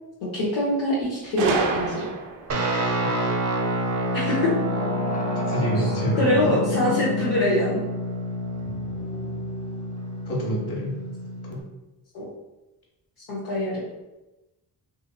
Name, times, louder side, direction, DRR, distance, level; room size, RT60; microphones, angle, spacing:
voice 1, 0.2-2.1 4.1-4.5 5.8-5.9 6.2-7.8 12.1-12.2 13.3-13.8, left 1 dB, 80° left, -7 dB, 0.9 m, -24 dB
Gunshot gunfire, 1.4-2.6, right 3 dB, 80° right, 0.6 m, -26 dB
sound 1, 2.4-10.2, left 3 dB, 20° left, 0.3 m, -35 dB
Guitar, 2.5-11.6, equal, 35° right, 0.6 m, -28 dB
voice 2, 2.8-3.2 5.5-6.9 8.6-8.7 10.3-11.0 11.4-11.6, equal, 55° left, -3 dB, 1.3 m, -28 dB
2.8 x 2.7 x 2.2 m, 1.0 s
supercardioid pair, 45°, 47 cm